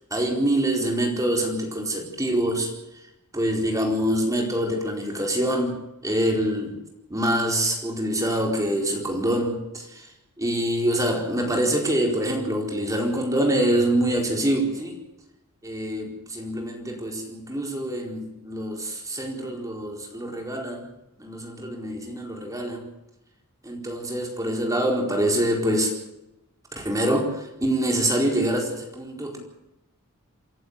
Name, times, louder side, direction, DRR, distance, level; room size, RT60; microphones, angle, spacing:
voice 1, 0.1-2.7 3.3-5.8 6.0-6.8 7.1-10.1 10.4-14.9 15.6-20.9 21.2-22.9 23.6-26.0 26.8-29.4, right 1 dB, 15° right, 1 dB, 4.5 m, -25 dB
28.0 x 11.5 x 8.3 m, 0.88 s
head